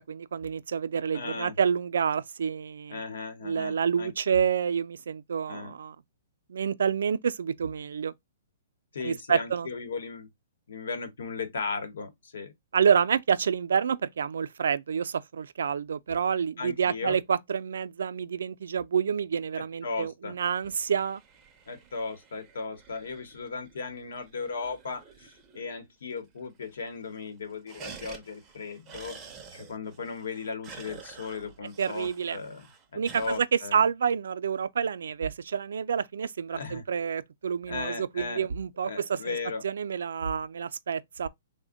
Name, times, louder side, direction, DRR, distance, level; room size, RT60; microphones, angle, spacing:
voice 1, 0.1-3.0 3.4-6.0 6.5-8.1 9.0-9.7 12.7-21.2 31.8-32.4 32.9-39.4 39.6-41.3, right 7 dB, 80° right, 0.3 m, -28 dB
voice 2, 1.1-1.6 2.9-4.1 5.5-5.7 8.9-10.3 10.7-12.5 16.6-17.2 19.8-20.3 21.7-29.2 29.5-32.7 32.9-33.8 36.5-36.8 37.7-38.5 38.8-39.6, left 4 dB, 80° left, 1.0 m, -36 dB
sound 1, 20.5-25.8 26.1-26.2 26.4-26.9 27.2-33.4, right 6 dB, 15° right, 0.4 m, -49 dB
3.4 x 2.1 x 3.6 m
hypercardioid pair, 165°, 0 cm